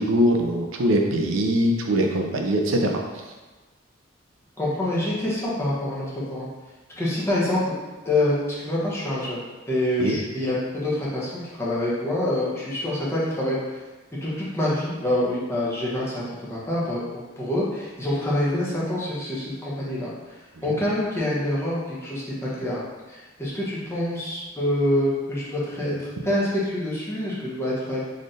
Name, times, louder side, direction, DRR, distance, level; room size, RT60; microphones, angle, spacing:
voice 1, 0.0-3.0 10.0-10.2, equal, 80° right, 2 dB, 0.5 m, -22 dB
voice 2, 4.6-6.4 7.0-7.7 8.0-13.8 14.2-22.8 23.1-28.1, left 1 dB, 15° left, -7 dB, 0.9 m, -26 dB
4.0 x 3.2 x 2.6 m, 1.2 s
head